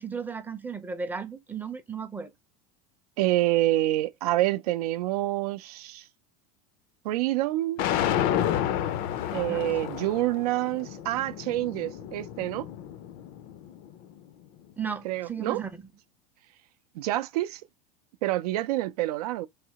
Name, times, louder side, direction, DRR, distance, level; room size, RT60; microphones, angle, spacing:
voice 1, 0.0-2.3 9.5-9.9 14.8-15.7, right 6 dB, 10° right, 0.5 m, -35 dB
voice 2, 3.2-6.1 7.0-7.8 9.3-12.7 15.0-15.6 16.9-17.6 18.2-19.5, right 16 dB, 85° right, 0.5 m, -27 dB
sound 1, 7.8-13.9, left 10 dB, 50° left, 0.5 m, -31 dB
3.3 x 2.8 x 2.8 m
supercardioid pair, 140°, 19 cm